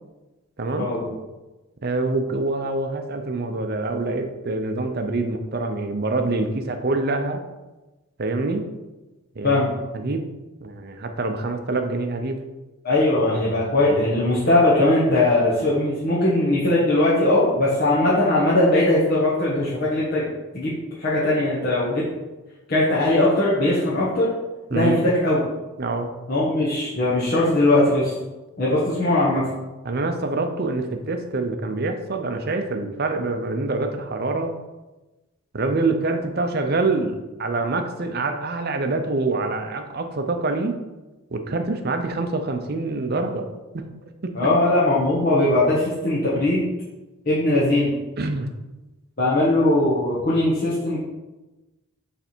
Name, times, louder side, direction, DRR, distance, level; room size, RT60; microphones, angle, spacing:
voice 1, 0.8-1.1 9.4-9.7 12.8-20.2 20.5-22.0 22.7-24.3 24.7-25.4 26.3-28.1 28.6-29.4 44.3-46.6 47.2-47.9 49.2-51.0, left 1 dB, 45° left, -8 dB, 1.2 m, -20 dB
voice 2, 1.8-7.4 8.2-8.6 9.4-9.6 9.9-10.2 10.6-12.4 24.7-25.0 25.8-26.1 29.8-34.5 35.5-40.8 41.3-43.5 43.7-43.8 44.2-44.3 48.2-48.5, right 3 dB, 45° right, 6 dB, 0.6 m, -25 dB
6.7 x 3.4 x 4.4 m, 1.1 s
head